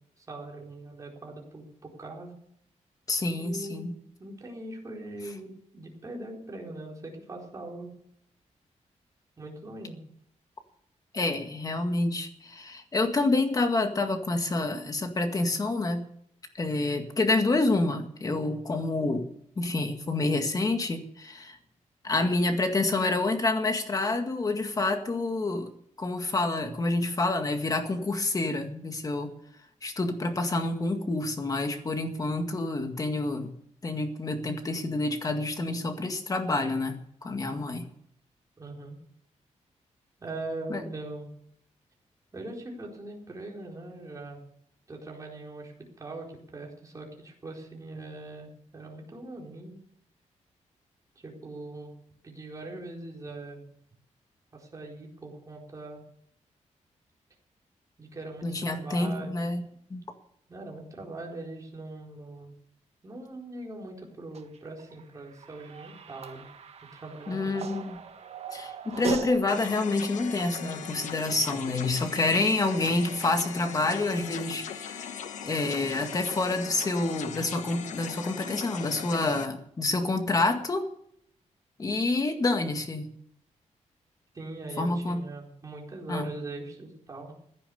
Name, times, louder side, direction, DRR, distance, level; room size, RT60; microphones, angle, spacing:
voice 1, 0.2-2.4 3.4-3.9 4.2-5.5 5.7-7.9 9.4-10.0 38.6-39.0 40.2-41.3 42.3-44.4 44.9-49.7 51.2-51.9 52.2-53.6 54.5-56.0 58.0-59.4 60.5-62.5 63.0-66.5 66.9-67.5 84.3-87.3, right 2 dB, 25° right, -1 dB, 4.4 m, -41 dB
voice 2, 3.1-4.0 11.1-16.1 16.5-19.3 19.6-21.6 22.0-25.7 26.0-29.3 29.8-33.5 33.8-37.9 40.7-40.8 58.4-59.6 59.9-60.0 67.3-68.0 68.5-75.2 75.4-80.9 81.8-83.1 84.8-85.3 86.1-86.3, left 2 dB, 30° left, 6 dB, 2.0 m, -28 dB
sound 1, 64.3-69.4, right 6 dB, 60° right, 1.4 m, -38 dB
sound 2, 69.5-79.5, left 8 dB, 85° left, 1.1 m, -39 dB
15.5 x 10.5 x 7.1 m, 0.69 s
wide cardioid pair, 155°, 12 cm